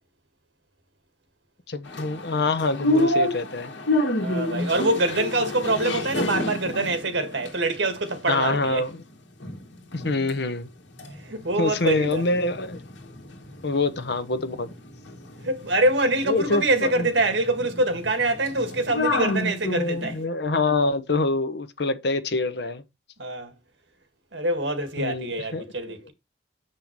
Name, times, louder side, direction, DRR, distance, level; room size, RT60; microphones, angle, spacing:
voice 1, 1.7-3.7 8.3-9.0 9.9-10.7 11.6-12.8 13.6-14.7 16.2-17.1 19.7-22.8 25.0-26.1, left 3 dB, 65° left, 1.0 m, -26 dB
sound 1, 1.9-9.0 9.4-10.4 10.6-20.2, left 1 dB, 90° left, 1.7 m, -29 dB
voice 2, 4.2-8.8 11.2-12.2 15.4-20.2 23.2-23.5 24.3-26.1, right 2 dB, 90° right, 1.8 m, -25 dB
6.8 x 5.7 x 4.5 m
head